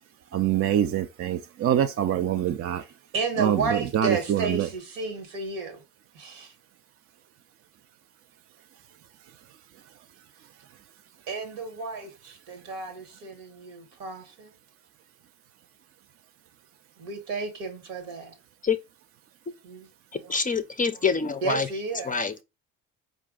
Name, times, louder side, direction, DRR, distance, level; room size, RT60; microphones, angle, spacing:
voice 1, 0.3-2.8 3.4-4.7, right 10 dB, 35° right, 0.5 m, -25 dB
voice 2, 2.8-5.8 6.1-6.5 11.3-14.5 17.0-18.3 19.6-19.9 20.2-20.4 21.4-22.1, right 4 dB, 75° right, 1.4 m, -32 dB
voice 3, 20.3-21.7 22.1-22.4, left 5 dB, 20° left, 0.5 m, -25 dB
4.5 x 2.5 x 3.7 m
hypercardioid pair, 60°, 39 cm